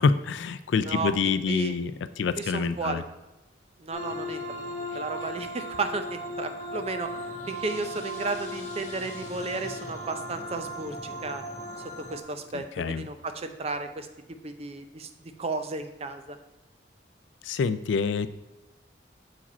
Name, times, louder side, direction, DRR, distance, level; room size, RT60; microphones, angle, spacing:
voice 1, 0.0-1.9 2.2-3.0 12.5-13.1 17.4-18.3, left 5 dB, 75° left, 13 dB, 0.4 m, -26 dB
voice 2, 2.4-3.0 3.8-4.7 4.9-7.1 7.5-11.4 12.0-14.1 14.4-15.1 15.4-16.4, right 3 dB, 30° right, 8 dB, 0.5 m, -33 dB
sound 1, 3.9-12.2, equal, 35° left, 1.0 m, -37 dB
7.1 x 4.8 x 4.2 m, 0.99 s
head